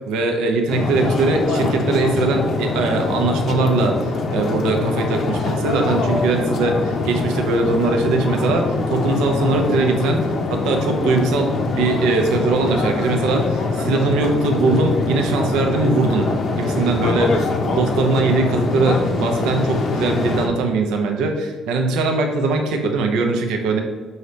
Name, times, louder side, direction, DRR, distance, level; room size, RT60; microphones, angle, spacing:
voice 1, 0.1-10.2 10.5-16.3 16.6-23.8, right 3 dB, 85° right, 3 dB, 0.5 m, -21 dB
sound 1, 0.7-20.5, left 3 dB, 55° left, 0.6 m, -23 dB
4.7 x 2.8 x 3.2 m, 1.3 s
supercardioid pair, 75°, 0 cm